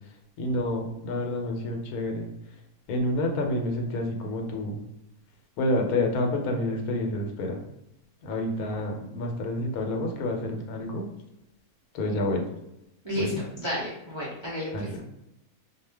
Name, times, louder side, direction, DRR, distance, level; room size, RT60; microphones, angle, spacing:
voice 1, 0.4-2.3 2.9-4.8 5.6-7.6 8.2-11.1 11.9-12.4 13.2-13.4 14.7-15.0, left 1 dB, 85° left, 2 dB, 1.1 m, -28 dB
voice 2, 13.0-15.0, left 1 dB, 45° right, -8 dB, 0.3 m, -32 dB
2.4 x 2.1 x 3.3 m, 0.88 s
omnidirectional pair, 1.5 m